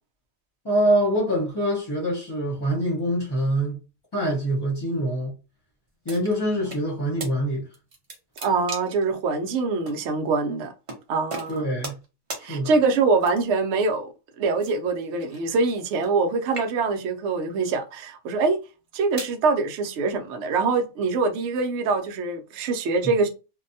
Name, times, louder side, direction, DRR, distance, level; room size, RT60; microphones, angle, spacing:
voice 1, 0.6-3.8 4.1-5.3 6.0-7.7 11.5-12.0 12.4-12.7, right 1 dB, 20° left, 0.9 m, -24 dB
sound 1, 6.1-6.8 7.2-7.3 7.7-9.0 9.9-10.0 10.9-11.0 11.3-12.0 12.3-12.4 13.2-13.6 14.6-16.2 16.5-17.0 17.7-18.0 18.7-19.4, right 2 dB, 45° right, 0.4 m, -37 dB
voice 2, 8.4-10.7 11.1-11.6 12.4-18.6 18.9-23.3, right 4 dB, 65° right, 0.8 m, -24 dB
2.6 x 2.1 x 2.6 m
omnidirectional pair, 1.5 m